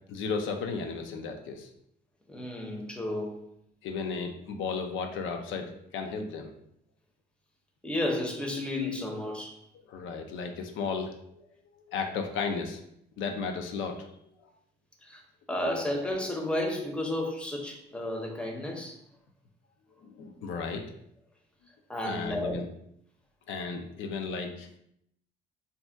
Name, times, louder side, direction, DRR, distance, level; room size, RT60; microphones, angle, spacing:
voice 1, 0.1-1.7 3.8-6.5 9.9-11.4 11.7-12.8 13.2-14.3 20.0-20.8 22.0-22.7 23.5-24.7, left 5 dB, 80° left, 0.5 m, -34 dB
voice 2, 2.3-3.4 7.8-9.6 15.0-15.2 15.5-19.0 21.9-22.6, left 1 dB, 5° left, 0.6 m, -32 dB
2.7 x 2.1 x 3.3 m
cardioid pair, 90°, 20 cm